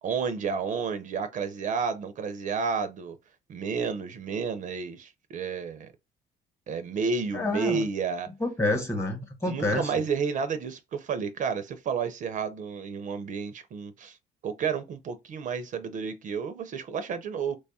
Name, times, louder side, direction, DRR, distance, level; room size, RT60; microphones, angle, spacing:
voice 1, 0.0-3.2 3.5-5.9 6.7-8.3 9.4-14.2 14.4-17.6, right 5 dB, 50° right, 0.5 m, -31 dB
voice 2, 7.3-7.8 8.4-9.9, left 2 dB, 15° left, 1.0 m, -28 dB
3.1 x 2.3 x 4.1 m
cardioid pair, 110°, 17 cm